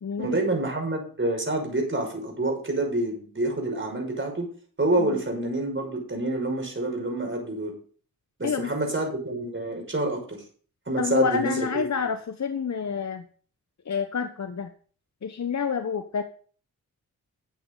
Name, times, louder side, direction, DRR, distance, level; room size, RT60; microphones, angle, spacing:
voice 1, 0.2-4.5 4.8-7.7 8.4-10.2 10.9-11.8, right 2 dB, 30° right, 1 dB, 5.8 m, -27 dB
voice 2, 11.0-13.2 13.8-14.7 15.2-16.2, left 6 dB, 45° left, 8 dB, 1.1 m, -28 dB
13.0 x 8.0 x 4.0 m, 0.43 s
cardioid pair, 45°, 37 cm